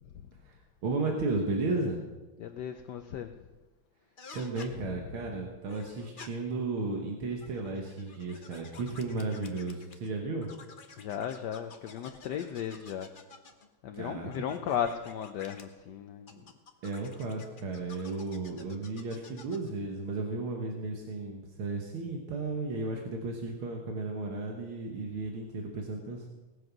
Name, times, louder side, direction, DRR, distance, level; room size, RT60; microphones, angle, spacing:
voice 1, 0.4-2.0 4.3-10.5 13.9-14.3 16.4-16.5 16.8-26.3, right 3 dB, 80° right, 2 dB, 2.2 m, -34 dB
voice 2, 2.4-3.3 5.2-5.3 11.0-13.1 13.8-16.4, left 9 dB, 65° left, 7 dB, 1.1 m, -35 dB
sound 1, 4.2-4.7 5.7-6.3 7.3-10.1 10.4-13.7 14.3-15.6 16.3-19.7, left 4 dB, 40° left, 0.7 m, -51 dB
18.0 x 7.9 x 6.0 m, 1.1 s
omnidirectional pair, 2.3 m